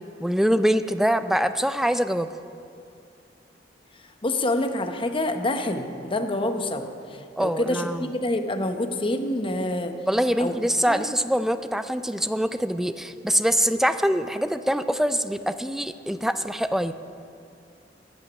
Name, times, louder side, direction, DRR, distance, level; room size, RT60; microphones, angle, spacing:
voice 1, 0.2-2.3 7.4-8.1 10.1-16.9, equal, ahead, 11 dB, 0.4 m, -24 dB
voice 2, 4.2-9.9 10.4-10.6 10.9-11.0, left 1 dB, 30° left, 6 dB, 0.8 m, -27 dB
14.0 x 6.1 x 9.9 m, 2.5 s
head